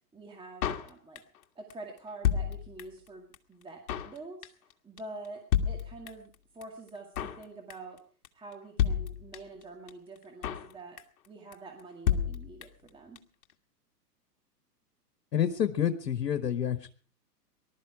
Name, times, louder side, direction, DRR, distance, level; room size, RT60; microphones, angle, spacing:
voice 1, 0.1-1.2 1.6-4.5 4.8-5.4 5.7-8.0 8.3-11.0 11.3-13.2, right 2 dB, 10° right, 2 dB, 2.1 m, -46 dB
Drum kit, 0.6-1.4 1.7-1.8 2.0-3.1 3.3-3.4 3.6-4.2 4.4-4.7 5.0-5.1 5.2-5.3 5.5-6.3 6.6-6.7 6.9-7.4 7.7-8.0 8.2-8.3 8.5-8.6 8.8-9.6 9.9-10.0 10.2-10.7 11.0-11.3 11.5-11.6 11.8-11.9 12.1-12.9 13.2-13.3 13.4-13.5, left 9 dB, 60° left, 1.7 m, -30 dB
voice 2, 15.3-16.9, left 9 dB, 85° left, 10 dB, 1.3 m, -28 dB
19.5 x 12.0 x 4.8 m, 0.41 s
hypercardioid pair, 120°, 48 cm